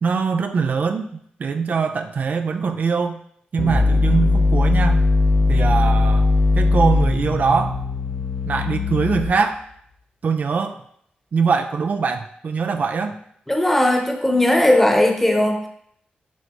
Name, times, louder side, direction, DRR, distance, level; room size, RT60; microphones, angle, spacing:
voice 1, 0.0-1.1 1.4-3.2 3.5-5.0 5.5-6.3 6.5-7.8 8.5-9.6 10.2-10.8 11.3-13.2, right 5 dB, 55° right, 7 dB, 0.4 m, -22 dB
sound 1, 3.6-9.6, left 3 dB, 45° left, 0.7 m, -19 dB
voice 2, 13.5-15.7, left 1 dB, 10° left, 2 dB, 1.0 m, -17 dB
9.3 x 3.3 x 3.0 m, 0.68 s
cardioid pair, 95°, 3 cm